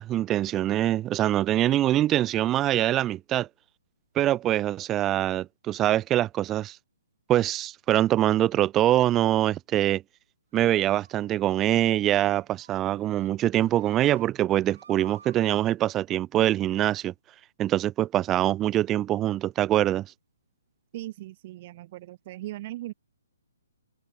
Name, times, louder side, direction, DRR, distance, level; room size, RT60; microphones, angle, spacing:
voice 1, 0.0-3.5 4.2-6.8 7.3-10.0 10.5-17.1 17.6-20.1, right 13 dB, 15° right, 0.6 m, -24 dB
sound 1, 10.5-11.1 11.5-11.7 12.0-12.3 12.6-13.3 13.6-14.2 14.6-15.4, right 6 dB, 70° right, 6.6 m, -54 dB
voice 2, 20.9-22.9, right 16 dB, 30° right, 3.9 m, -38 dB
hypercardioid pair, 170°, 0 cm